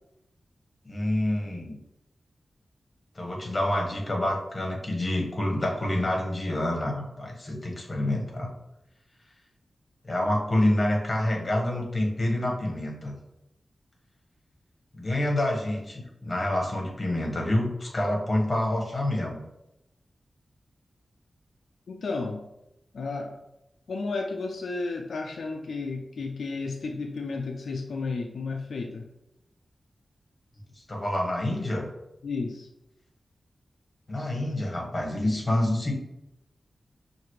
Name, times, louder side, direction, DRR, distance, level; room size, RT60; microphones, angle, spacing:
voice 1, 0.8-1.8 3.1-8.5 10.0-13.1 14.9-19.4 30.8-31.8 34.1-35.9, left 1 dB, 30° left, -1 dB, 1.2 m, -27 dB
voice 2, 21.9-22.4 22.9-23.4 23.9-29.1 32.2-32.7, left 3 dB, 85° left, 2 dB, 0.4 m, -32 dB
5.7 x 2.6 x 3.1 m, 0.87 s
wide cardioid pair, 85°, 0 cm